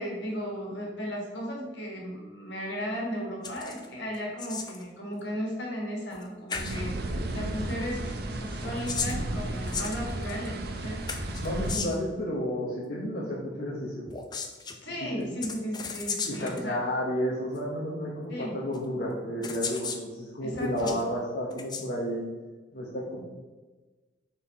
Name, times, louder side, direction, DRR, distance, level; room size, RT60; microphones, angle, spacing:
voice 1, 0.0-11.1 14.8-16.8 18.3-18.6 20.4-21.0, equal, 70° left, -2 dB, 1.9 m, -35 dB
sound 1, 3.4-3.9 4.1-4.8 6.1-6.2 6.5-6.8 8.5-10.5 11.1-12.1 14.1-14.8 15.4-16.6 17.6-17.7 18.7-18.8 19.4-20.0 20.5-21.0 21.5-21.9, left 5 dB, 20° left, 0.4 m, -35 dB
sound 2, 6.6-11.8, right 1 dB, 55° right, 0.7 m, -33 dB
voice 2, 11.4-14.1 15.0-15.3 16.3-22.2 22.7-23.2, equal, 50° left, -5 dB, 1.0 m, -32 dB
5.6 x 4.5 x 4.2 m, 1.3 s
head